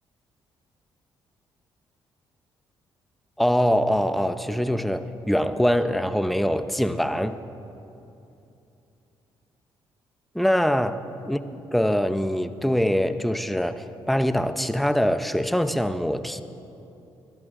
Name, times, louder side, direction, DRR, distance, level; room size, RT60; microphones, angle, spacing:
voice 1, 3.4-7.4 10.3-11.4 11.7-16.4, equal, ahead, 11 dB, 0.8 m, -23 dB
20.5 x 13.0 x 3.8 m, 2.8 s
supercardioid pair, 60°, 10 cm